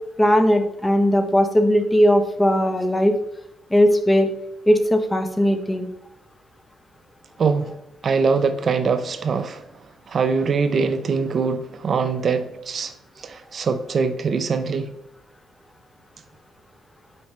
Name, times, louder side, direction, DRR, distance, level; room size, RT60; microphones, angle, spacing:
voice 1, 0.2-3.2 3.7-4.3 4.7-5.9, equal, 15° left, 0.8 m, -18 dB
voice 2, 7.4-7.7 8.0-9.6 10.1-12.9 13.2-14.9, right 5 dB, 50° right, 0.4 m, -23 dB
6.4 x 4.8 x 3.2 m
cardioid pair, 90°, 0 cm